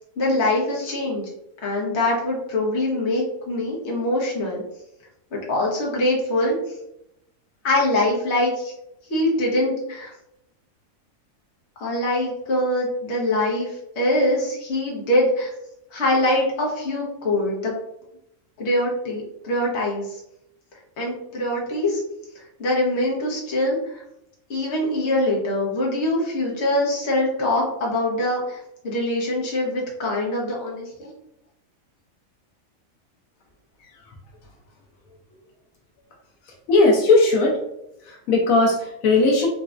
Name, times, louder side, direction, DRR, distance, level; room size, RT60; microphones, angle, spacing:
voice 1, 0.2-1.2 1.6-4.6 5.3-6.5 7.6-8.7 9.1-10.1 11.8-15.5 15.9-17.7 18.6-20.2 21.0-22.0 22.4-24.0 24.5-31.1, left 1 dB, 60° left, -3 dB, 1.1 m, -23 dB
voice 2, 36.7-37.6 38.1-39.5, left 3 dB, 85° left, 0 dB, 1.1 m, -17 dB
4.0 x 2.3 x 2.4 m, 0.82 s
omnidirectional pair, 1.4 m